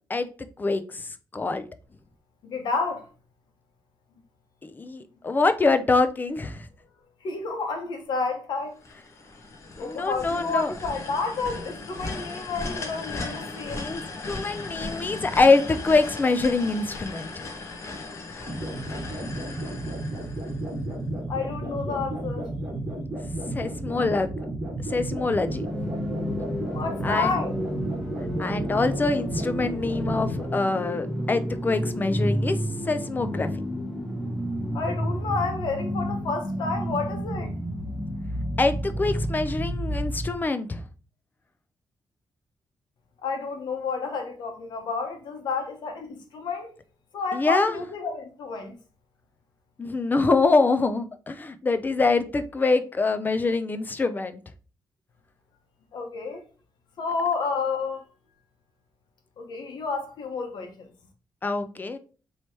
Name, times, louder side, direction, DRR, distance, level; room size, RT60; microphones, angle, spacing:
voice 1, 0.6-1.6 4.6-6.7 9.8-10.7 13.6-17.4 23.5-24.4 24.8-25.6 27.0-27.3 28.4-33.5 38.6-40.8 47.3-47.8 49.8-54.4 61.4-62.0, left 3 dB, 25° left, 0.4 m, -25 dB
voice 2, 2.4-3.1 7.2-8.8 9.8-13.9 21.3-22.5 26.6-27.5 34.7-37.5 43.2-46.7 47.1-48.8 55.9-56.4 57.0-58.1 59.4-60.9, left 4 dB, 80° left, 1.0 m, -30 dB
sound 1, 8.8-20.9, left 3 dB, 40° left, 0.9 m, -37 dB
sound 2, 18.4-30.5, right 1 dB, 20° right, 1.4 m, -33 dB
sound 3, 25.5-40.4, equal, ahead, 1.1 m, -30 dB
3.2 x 3.0 x 4.2 m
wide cardioid pair, 130°, 7 cm